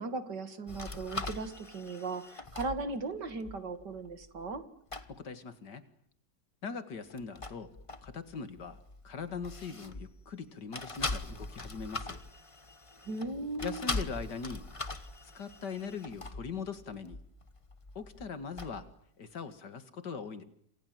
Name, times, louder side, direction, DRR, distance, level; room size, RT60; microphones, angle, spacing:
voice 1, 0.0-4.6 13.0-13.8, right 3 dB, 65° right, 11 dB, 2.7 m, -37 dB
sound 1, 0.7-4.7 4.9-5.2 7.1-10.4 10.7-19.0, left 2 dB, 20° left, 1.2 m, -42 dB
voice 2, 5.1-5.9 6.6-7.7 8.0-12.2 13.6-14.6 15.3-17.2 18.0-18.9 19.2-20.4, left 5 dB, 65° left, 11 dB, 2.5 m, -41 dB
28.0 x 26.5 x 7.8 m, 0.66 s
omnidirectional pair, 2.0 m